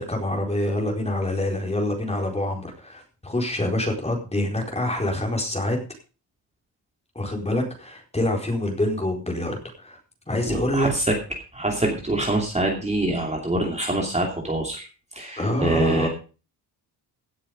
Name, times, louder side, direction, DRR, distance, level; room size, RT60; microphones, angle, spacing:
voice 1, 0.0-5.8 7.1-10.0 10.3-10.9 15.4-16.1, left 1 dB, 15° left, 1 dB, 4.5 m, -26 dB
voice 2, 10.5-11.1 11.5-14.9 15.1-16.1, right 2 dB, 15° right, 1 dB, 2.7 m, -25 dB
17.0 x 7.6 x 5.2 m, 0.36 s
cardioid pair, 125°, 41 cm